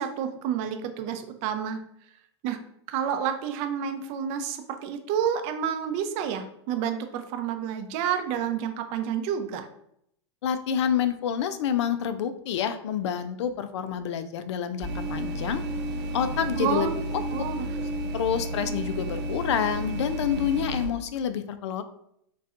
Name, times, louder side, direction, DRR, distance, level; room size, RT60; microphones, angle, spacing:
voice 1, 0.0-1.8 2.4-2.6 2.9-9.7 16.6-16.9 17.3-17.7, right 8 dB, 45° right, 7 dB, 0.5 m, -29 dB
voice 2, 10.4-15.6 16.1-16.9 18.1-21.8, left 8 dB, 75° left, 11 dB, 0.4 m, -28 dB
sound 1, 14.8-20.9, right 1 dB, 80° right, 1.0 m, -32 dB
4.2 x 2.2 x 2.4 m, 0.73 s
hypercardioid pair, 110°, 15 cm